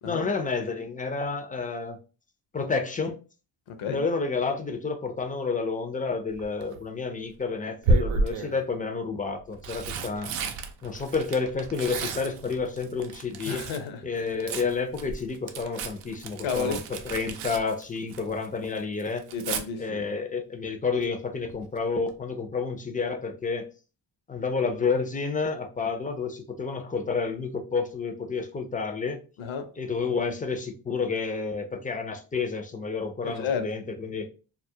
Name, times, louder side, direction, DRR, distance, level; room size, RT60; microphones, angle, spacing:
voice 1, 0.0-2.0 2.5-3.2 3.9-10.4 10.8-13.7 14.0-19.3 19.8-23.7 24.3-29.2 29.8-34.3, left 4 dB, 20° left, 0.3 m, -30 dB
voice 2, 3.7-4.0 13.5-14.0 16.4-16.8 19.3-20.0 29.4-29.7 33.2-33.7, left 6 dB, 70° left, 0.7 m, -31 dB
Tearing, 6.3-6.8 7.8-8.6 9.4-13.9 14.2-18.5 18.8-19.6 21.5-21.8 22.1-22.2, right 3 dB, 85° right, 0.5 m, -31 dB
2.3 x 2.0 x 2.6 m
cardioid pair, 75°, 49 cm